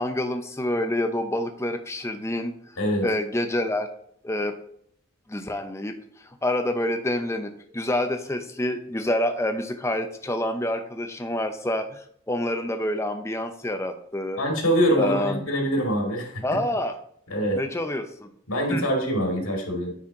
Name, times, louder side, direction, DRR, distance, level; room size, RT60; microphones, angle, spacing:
voice 1, 0.0-2.5 3.0-3.9 4.2-4.5 5.3-6.0 6.4-14.4 15.0-15.4 16.4-16.9 17.5-18.3 18.7-18.8, left 1 dB, 10° left, 6 dB, 0.6 m, -27 dB
voice 2, 2.8-3.1 14.4-16.4 17.3-17.6 18.5-19.9, equal, 70° left, 1 dB, 2.1 m, -24 dB
9.6 x 4.2 x 3.8 m, 0.67 s
head